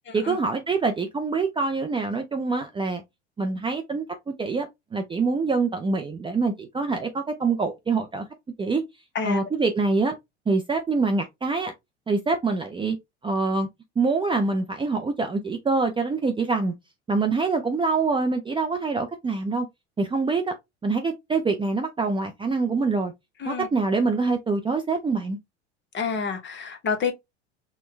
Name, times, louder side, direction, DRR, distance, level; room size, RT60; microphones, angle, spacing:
voice 1, 0.1-3.0 3.4-8.3 8.6-8.8 9.2-10.1 10.5-11.7 12.1-13.0 13.2-13.7 14.0-16.7 17.1-19.7 20.0-20.5 20.8-23.1 23.5-25.4, right 4 dB, 15° right, 0.5 m, -25 dB
voice 2, 9.1-9.5 23.4-23.7 25.9-27.1, left 5 dB, 30° left, 1.1 m, -28 dB
4.3 x 2.3 x 3.1 m
hypercardioid pair, 85°, 36 cm